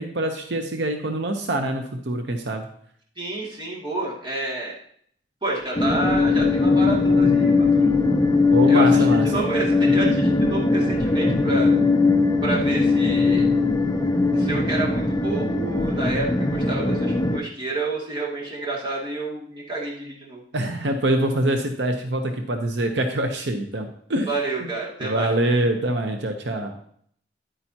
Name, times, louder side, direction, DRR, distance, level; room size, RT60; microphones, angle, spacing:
voice 1, 0.0-2.7 8.5-9.3 20.5-24.3 24.6-24.7 25.0-26.7, right 1 dB, 75° right, 5 dB, 0.8 m, -24 dB
voice 2, 3.2-4.8 5.4-7.9 8.7-11.7 12.4-13.5 14.3-20.4 24.3-25.3, right 2 dB, 25° right, -4 dB, 2.3 m, -29 dB
sound 1, 5.8-17.4, left 3 dB, 20° left, 0.6 m, -20 dB
10.0 x 8.9 x 2.8 m, 0.62 s
head